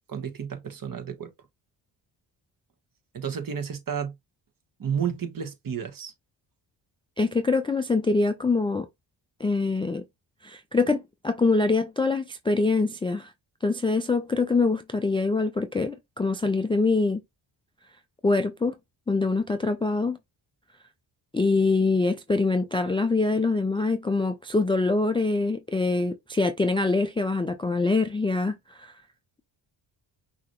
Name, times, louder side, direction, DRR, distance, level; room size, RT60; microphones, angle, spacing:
voice 1, 0.1-1.3 3.1-4.1 4.8-6.1, right 7 dB, 45° right, 1.3 m, -31 dB
voice 2, 7.2-8.9 9.4-10.0 10.4-13.3 13.6-17.2 18.2-18.7 19.1-20.2 21.3-28.9, left 3 dB, 10° left, 0.3 m, -24 dB
5.9 x 2.9 x 3.0 m
cardioid pair, 120°, 46 cm